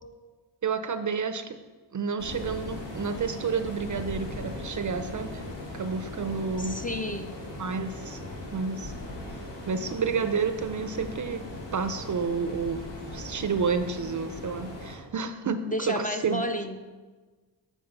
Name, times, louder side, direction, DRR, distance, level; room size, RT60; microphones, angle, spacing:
voice 1, 0.6-1.6 1.9-5.4 5.7-6.8 7.6-8.2 8.5-8.9 9.7-11.4 11.7-12.8 13.1-16.4, right 5 dB, 40° right, 10 dB, 0.5 m, -30 dB
sound 1, 2.2-15.0, left 1 dB, 70° left, 2.0 m, -39 dB
voice 2, 6.6-7.4 15.7-16.8, left 1 dB, 20° left, 6 dB, 0.5 m, -31 dB
7.8 x 4.8 x 5.3 m, 1.3 s
cardioid pair, 80°, 46 cm